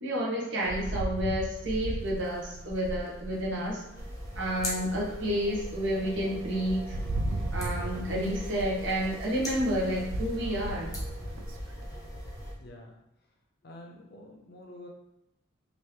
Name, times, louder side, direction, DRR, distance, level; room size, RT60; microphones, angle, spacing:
voice 1, 0.0-3.8 4.3-7.0 7.5-10.9, equal, 65° right, -4 dB, 1.0 m, -30 dB
Rain, 0.6-4.2 4.7-4.8 5.3-11.9, right 1 dB, 80° right, 0.3 m, -37 dB
sound 1, 3.9-12.5, equal, 15° left, 0.7 m, -40 dB
voice 2, 12.6-13.0 13.6-14.9, left 1 dB, 50° left, 0 dB, 0.6 m, -48 dB
3.0 x 2.6 x 3.3 m, 0.87 s
head